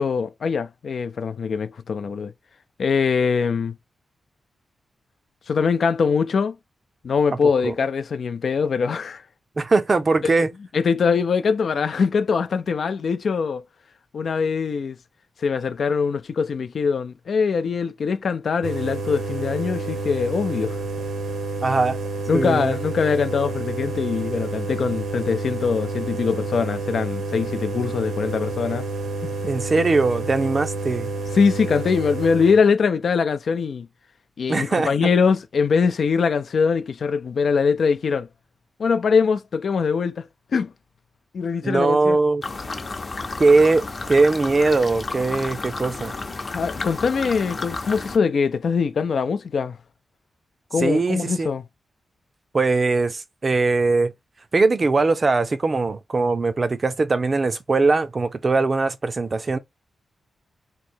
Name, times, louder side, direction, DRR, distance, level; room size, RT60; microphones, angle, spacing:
voice 1, 0.0-2.3 2.8-3.7 5.5-6.6 7.0-9.2 10.2-10.3 10.7-13.6 14.1-15.0 15.4-20.8 22.3-28.9 29.7-29.9 31.3-33.9 34.4-38.3 38.8-40.7 41.3-42.2 46.5-49.8 50.7-51.6, left 5 dB, 60° left, 0.4 m, -22 dB
voice 2, 9.6-10.5 21.6-22.0 22.3-22.8 29.5-31.1 34.5-34.9 41.6-42.4 43.4-46.1 50.8-51.5 52.5-54.1 54.5-59.6, right 3 dB, 35° right, 0.5 m, -20 dB
sound 1, 18.6-32.6, right 3 dB, 85° right, 1.0 m, -29 dB
sound 2, 42.4-48.2, left 3 dB, 35° left, 0.8 m, -32 dB
3.1 x 2.7 x 4.4 m
wide cardioid pair, 125°, 0 cm